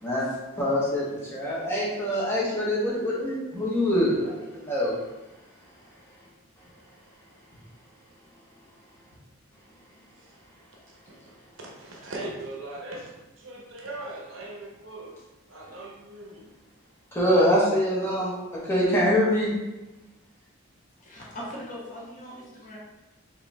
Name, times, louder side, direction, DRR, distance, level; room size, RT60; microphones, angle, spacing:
voice 1, 0.6-5.0 17.1-19.5, equal, 10° left, -6 dB, 1.3 m, -24 dB
voice 2, 11.6-13.1 13.4-15.1 15.5-16.5, right 2 dB, 65° right, -2 dB, 0.9 m, -39 dB
voice 3, 21.0-22.8, equal, 40° left, -4 dB, 0.9 m, -40 dB
5.0 x 3.1 x 3.4 m, 1.0 s
head